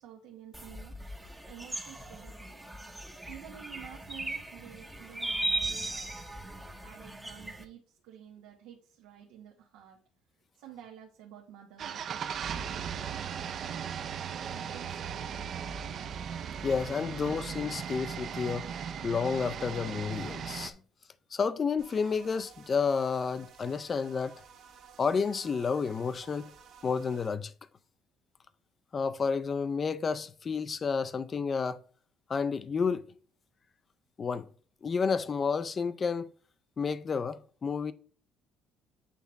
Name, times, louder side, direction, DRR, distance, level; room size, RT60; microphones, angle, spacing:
voice 1, 0.0-2.7 3.3-6.2 6.8-10.0 10.6-13.9 14.2-15.5, right 10 dB, 90° right, 1.0 m, -51 dB
sound 1, 0.5-7.6, right 1 dB, 5° right, 0.7 m, -38 dB
sound 2, 11.8-20.7, right 7 dB, 40° right, 0.5 m, -37 dB
voice 2, 16.6-18.7 19.0-20.8 21.3-24.4 25.0-26.5 26.8-27.5 28.9-31.8 32.3-33.1 34.2-34.5 34.8-36.3 36.8-37.9, left 5 dB, 25° left, 0.4 m, -30 dB
sound 3, 21.8-27.3, right 7 dB, 60° right, 1.5 m, -54 dB
8.3 x 3.5 x 4.0 m
cardioid pair, 160°, 0 cm